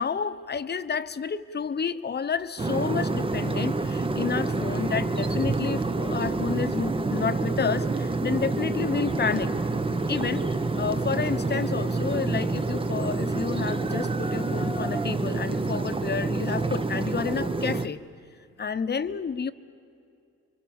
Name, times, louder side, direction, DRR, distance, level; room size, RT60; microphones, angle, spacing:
voice 1, 0.0-9.5 10.1-18.0 18.6-19.5, left 6 dB, 35° left, 11 dB, 1.1 m, -30 dB
sound 1, 2.6-17.9, right 3 dB, 20° right, 0.9 m, -27 dB
29.5 x 24.0 x 7.1 m, 2.5 s
cardioid pair, 90°, 30 cm